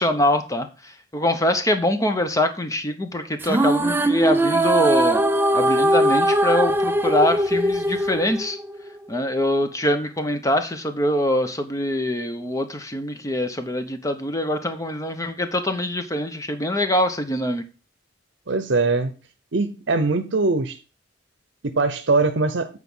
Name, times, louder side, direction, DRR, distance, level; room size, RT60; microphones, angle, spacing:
voice 1, 0.0-5.2 5.5-8.6 9.1-17.6, left 1 dB, 15° left, 0.8 m, -24 dB
sound 1, 3.4-8.9, right 1 dB, 10° right, 0.4 m, -20 dB
voice 2, 18.5-19.1 19.5-20.8 21.6-22.7, right 3 dB, 70° right, 0.7 m, -21 dB
8.2 x 4.7 x 5.5 m
head